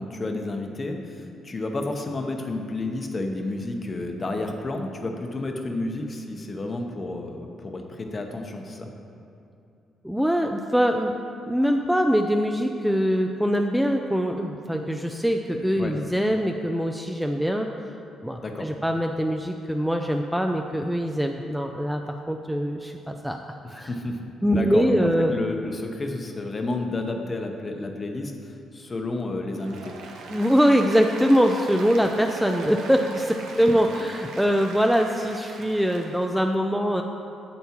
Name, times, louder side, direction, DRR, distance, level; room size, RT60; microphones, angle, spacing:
voice 1, 0.0-8.9 15.8-15.9 18.4-18.7 23.6-24.2 24.5-24.9 25.3-29.9 33.7-33.8, left 2 dB, 30° left, 3 dB, 0.8 m, -31 dB
voice 2, 10.0-11.1 11.5-17.7 18.2-22.0 22.3-23.4 23.7-23.9 24.4-25.4 30.3-37.0, equal, 5° right, 3 dB, 0.4 m, -23 dB
Applause, 29.5-36.3, right 3 dB, 85° right, 0.8 m, -40 dB
9.4 x 6.9 x 3.0 m, 2.6 s
cardioid pair, 90°, 0 cm